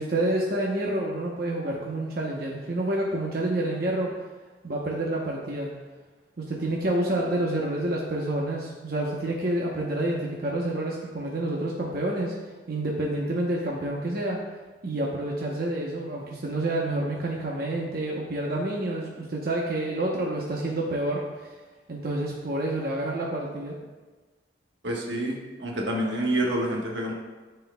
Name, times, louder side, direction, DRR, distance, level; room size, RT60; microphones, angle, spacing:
voice 1, 0.0-4.1 4.6-5.7 6.4-12.3 12.7-14.4 14.8-21.5 21.9-23.7, right 1 dB, 55° right, -3 dB, 0.9 m, -28 dB
voice 2, 24.8-27.1, right 1 dB, 80° right, -1 dB, 1.3 m, -28 dB
12.5 x 4.5 x 2.3 m, 1.3 s
head